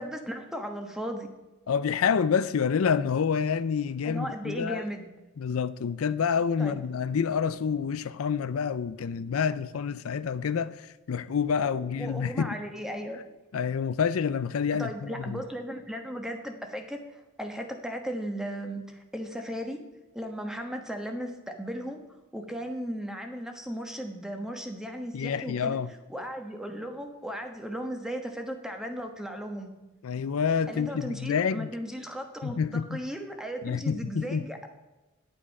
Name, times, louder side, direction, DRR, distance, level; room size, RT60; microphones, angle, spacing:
voice 1, 0.0-1.3 4.0-5.1 6.6-6.8 11.6-13.2 14.7-19.8 20.1-22.0 22.3-25.8 26.1-29.7 30.7-34.7, equal, 5° right, 1.2 m, -36 dB
voice 2, 1.7-4.8 5.4-12.6 13.5-15.4 25.1-25.9 30.0-31.7 32.4-33.0 33.6-34.4, left 6 dB, 85° left, 0.4 m, -28 dB
9.6 x 8.7 x 5.4 m
head